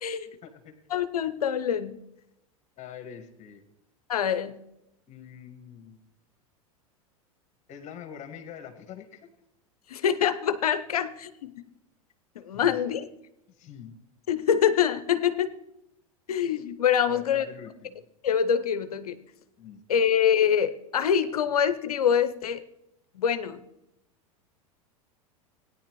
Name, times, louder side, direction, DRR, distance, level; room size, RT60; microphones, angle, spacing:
voice 1, 0.2-0.7 2.8-3.6 5.1-6.0 7.7-9.3 12.5-12.8 13.5-14.0 17.0-18.0 19.6-19.8, left 8 dB, 40° left, 7 dB, 1.7 m, -44 dB
voice 2, 0.9-2.0 4.1-4.6 9.9-11.5 12.4-13.1 14.3-15.5 16.3-17.5 18.2-19.2 19.9-22.6 23.1-23.6, left 8 dB, 80° left, 13 dB, 0.7 m, -25 dB
17.5 x 9.8 x 3.1 m, 0.86 s
hypercardioid pair, 90°, 19 cm